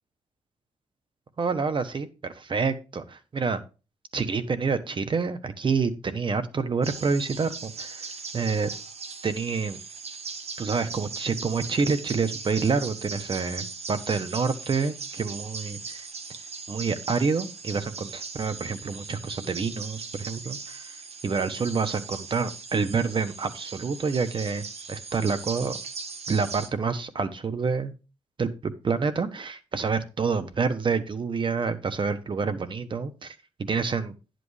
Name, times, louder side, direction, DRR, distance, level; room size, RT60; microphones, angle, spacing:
voice 1, 1.4-3.6 4.1-8.1 8.3-8.7 9.2-9.8 10.6-16.1 16.7-20.9 21.2-25.7 26.3-27.9 28.4-34.1, right 5 dB, 45° right, 11 dB, 1.1 m, -28 dB
sound 1, 6.8-26.7, right 4 dB, 60° right, 1.4 m, -39 dB
11.0 x 7.8 x 3.3 m, 0.32 s
cardioid pair, 90°, 12 cm